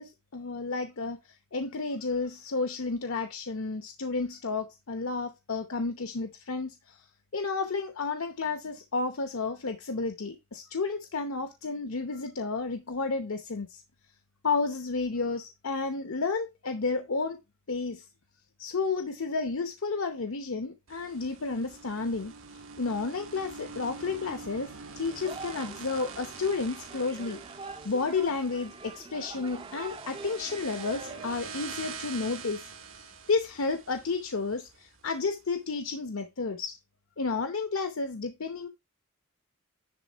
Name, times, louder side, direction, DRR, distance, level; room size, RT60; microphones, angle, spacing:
voice 1, 0.0-7.1 7.3-13.8 14.4-17.4 17.7-18.0 18.6-22.3 22.8-27.4 27.8-36.8 37.2-38.7, left 4 dB, 70° left, 0.8 m, -32 dB
sound 1, 20.9-35.1, right 5 dB, 70° right, 1.6 m, -45 dB
sound 2, 25.1-31.4, right 4 dB, 25° right, 0.5 m, -44 dB
10.5 x 3.7 x 4.5 m
head